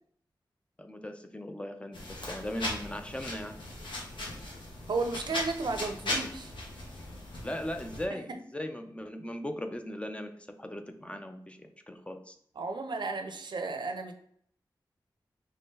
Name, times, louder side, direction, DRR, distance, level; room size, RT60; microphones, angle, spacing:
voice 1, 0.8-3.6 7.4-10.3 10.6-12.4, left 1 dB, 15° left, 7 dB, 0.4 m, -38 dB
sound 1, 1.9-8.0, left 1 dB, 90° left, 1.0 m, -38 dB
voice 2, 4.9-6.5 8.1-8.2 12.6-14.1, right 3 dB, 70° right, 6 dB, 0.5 m, -33 dB
3.4 x 2.7 x 3.6 m, 0.66 s
wide cardioid pair, 85°, 8 cm